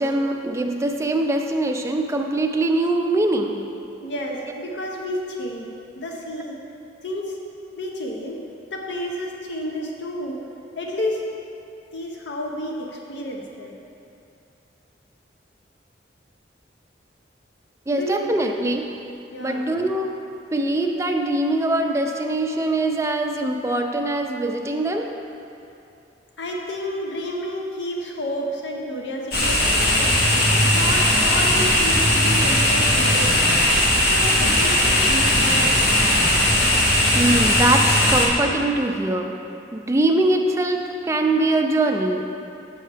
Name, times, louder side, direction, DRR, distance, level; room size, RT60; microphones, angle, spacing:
voice 1, 0.0-3.6 17.9-18.9 19.4-20.2 20.5-25.1 37.1-39.4 39.7-42.3, right 2 dB, 15° right, 3 dB, 0.3 m, -22 dB
voice 2, 4.0-5.7 6.0-6.6 7.0-7.4 7.8-8.4 8.7-10.4 10.8-11.3 11.9-13.8 17.9-18.3 19.3-19.7 26.4-30.1 30.7-33.6 34.0-36.0, left 1 dB, 75° left, 0 dB, 0.6 m, -30 dB
sound 1, 29.3-38.3, left 1 dB, 55° left, 1.1 m, -18 dB
7.7 x 5.5 x 3.3 m, 2.8 s
head